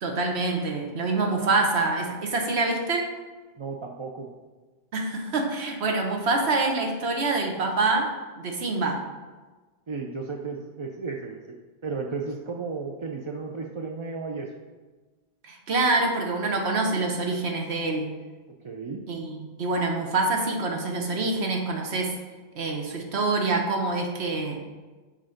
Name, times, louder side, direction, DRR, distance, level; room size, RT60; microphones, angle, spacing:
voice 1, 0.0-3.1 4.9-8.1 8.4-9.0 15.4-18.1 19.1-22.1 22.5-24.6, right 3 dB, 75° right, 2 dB, 1.3 m, -26 dB
voice 2, 3.6-4.3 9.9-14.5 18.6-19.0, right 4 dB, 40° right, 1 dB, 0.4 m, -34 dB
6.3 x 4.6 x 6.4 m, 1.3 s
omnidirectional pair, 1.1 m